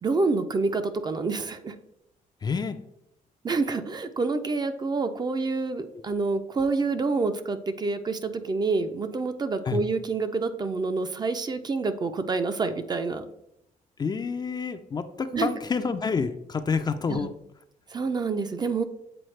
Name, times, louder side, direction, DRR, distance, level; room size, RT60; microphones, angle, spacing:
voice 1, 0.0-1.8 3.4-13.3 15.3-15.5 17.1-17.3 17.9-18.8, right 3 dB, 30° right, 9 dB, 0.5 m, -27 dB
voice 2, 2.4-2.8 5.9-6.0 9.7-9.8 14.0-17.3, left 5 dB, 30° left, 9 dB, 0.4 m, -28 dB
7.8 x 4.1 x 3.2 m, 0.78 s
cardioid pair, 120°, 15 cm